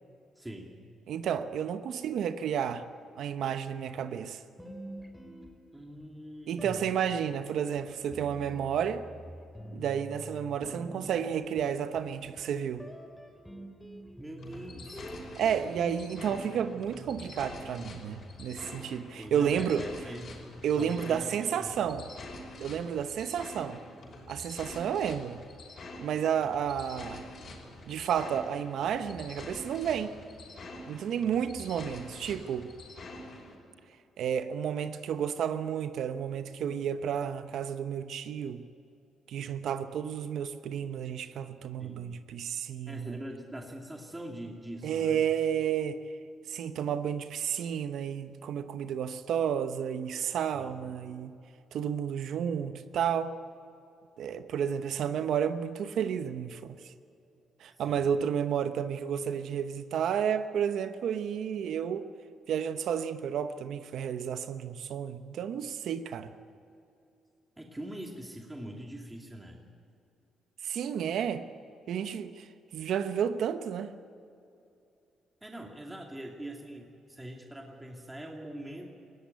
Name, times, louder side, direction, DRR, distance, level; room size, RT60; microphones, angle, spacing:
voice 1, 0.4-0.7 5.7-6.9 14.2-15.0 19.1-20.4 20.7-21.3 21.6-21.7 41.8-42.1 42.9-45.3 50.5-50.8 57.8-58.1 67.6-69.6 75.4-79.0, right 1 dB, 10° right, 2.5 m, -43 dB
voice 2, 1.1-2.9 3.2-4.4 6.5-9.0 9.7-12.9 15.3-19.9 20.6-22.1 22.6-23.8 24.3-25.4 26.0-27.2 27.9-30.1 30.9-32.7 34.2-38.7 39.3-43.2 44.8-46.0 46.5-51.4 51.7-53.3 54.2-56.8 57.6-62.0 62.5-66.3 70.6-71.5 71.9-72.5 72.7-73.9, right 8 dB, 75° right, 1.0 m, -31 dB
sound 1, 4.6-6.1 6.6-18.8, right 1 dB, 5° left, 3.5 m, -47 dB
sound 2, 14.4-33.6, left 2 dB, 50° left, 5.8 m, -46 dB
20.5 x 17.0 x 9.4 m
cardioid pair, 90°, 0 cm